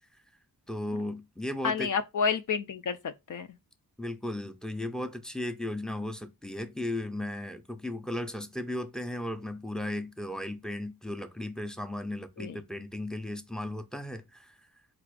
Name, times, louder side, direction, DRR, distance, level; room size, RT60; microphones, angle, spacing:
voice 1, 0.7-1.9 4.0-14.6, left 1 dB, ahead, 0.5 m, -36 dB
voice 2, 1.6-3.5 12.4-12.5, left 6 dB, 55° left, 0.5 m, -30 dB
4.1 x 2.5 x 4.7 m
wide cardioid pair, 85°, 38 cm